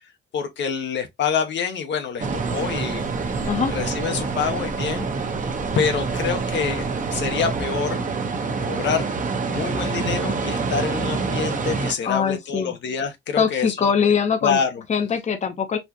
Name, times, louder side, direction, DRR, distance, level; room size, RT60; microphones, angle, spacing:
voice 1, 0.3-3.1 3.7-5.1 5.7-8.0 8.6-9.0 9.4-13.9 14.4-14.8, left 6 dB, 65° left, 0.9 m, -26 dB
sound 1, 2.2-7.6, right 2 dB, 15° right, 0.8 m, -39 dB
sound 2, 2.2-11.9, right 4 dB, 40° right, 0.9 m, -26 dB
voice 2, 12.0-12.7 13.3-14.6 14.9-15.8, left 6 dB, 35° left, 0.7 m, -22 dB
4.2 x 2.5 x 2.8 m
cardioid pair, 90°, 20 cm